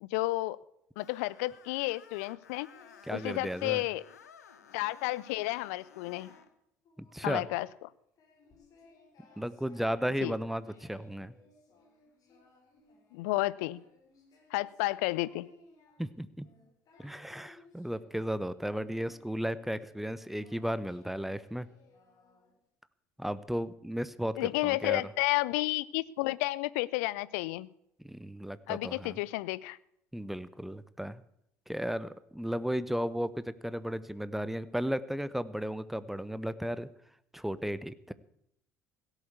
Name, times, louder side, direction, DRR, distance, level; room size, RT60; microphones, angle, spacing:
voice 1, 0.0-0.6 1.0-2.7 3.1-4.0 4.7-6.3 7.2-7.9 10.2-10.3 13.1-13.8 14.5-15.5 24.4-27.7 28.7-29.8, left 20 dB, 65° left, 21 dB, 0.5 m, -31 dB
Screech, 1.0-6.5, left 7 dB, 80° left, 1.0 m, -56 dB
Singing, 2.7-4.2 4.6-5.3 5.7-6.5 6.8-7.7 8.2-22.7, left 3 dB, 45° left, 4.3 m, -61 dB
voice 2, 3.1-3.8 7.0-7.5 9.4-11.3 16.0-16.5 17.0-21.7 23.2-25.0 28.0-29.2 30.1-31.2 31.7-36.9 37.3-38.1, equal, ahead, 16 dB, 0.9 m, -34 dB
16.5 x 8.2 x 8.2 m, 0.76 s
figure-of-eight pair, 60°, 8 cm